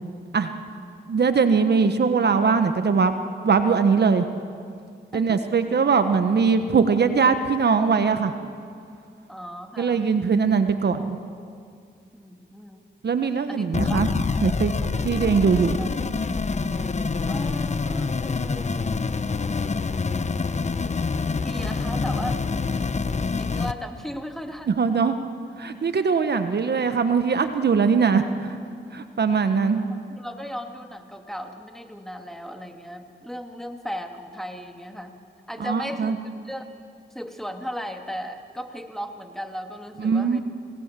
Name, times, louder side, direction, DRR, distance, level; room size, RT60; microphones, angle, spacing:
voice 1, 1.1-3.1 3.4-4.3 5.1-8.3 9.8-11.2 13.0-14.1 14.4-14.7 15.0-15.8 24.8-25.2 25.6-28.5 28.9-29.8 35.6-36.1 40.0-40.4, right 5 dB, 60° right, 8 dB, 1.3 m, -21 dB
voice 2, 9.3-10.1 12.1-12.9 13.5-14.0 14.8-15.0 15.5-15.9 17.3-19.2 21.4-22.4 22.7-22.9 23.4-24.7 26.0-26.2 29.9-35.2 35.5-36.7 37.1-40.4, equal, ahead, 4 dB, 2.7 m, -36 dB
sound 1, 13.7-23.7, left 4 dB, 40° left, 1.0 m, -26 dB
28.5 x 18.5 x 7.7 m, 2.3 s
cardioid pair, 50°, 19 cm